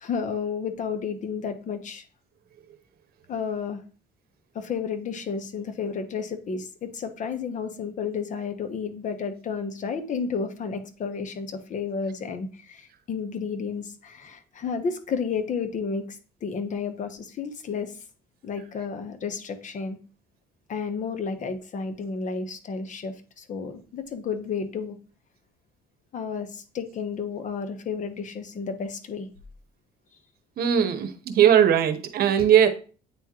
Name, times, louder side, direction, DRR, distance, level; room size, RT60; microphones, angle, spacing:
voice 1, 0.0-2.0 3.3-3.8 4.5-17.9 18.4-20.0 20.7-25.0 26.1-29.3, left 5 dB, 50° left, 8 dB, 1.0 m, -32 dB
voice 2, 30.6-32.7, right 9 dB, 65° right, 9 dB, 0.9 m, -19 dB
8.9 x 3.6 x 3.0 m, 0.37 s
cardioid pair, 110°, 17 cm